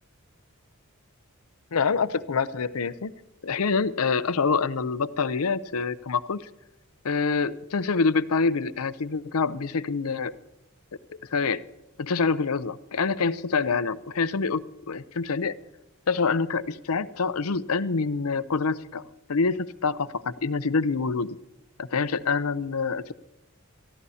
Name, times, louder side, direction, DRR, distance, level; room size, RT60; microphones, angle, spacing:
voice 1, 1.7-3.1 3.4-6.4 7.0-10.3 11.3-11.6 12.0-15.5 16.1-19.0 19.3-21.4 21.8-23.1, left 4 dB, 80° left, 14 dB, 0.6 m, -26 dB
22.5 x 15.0 x 2.8 m, 0.95 s
head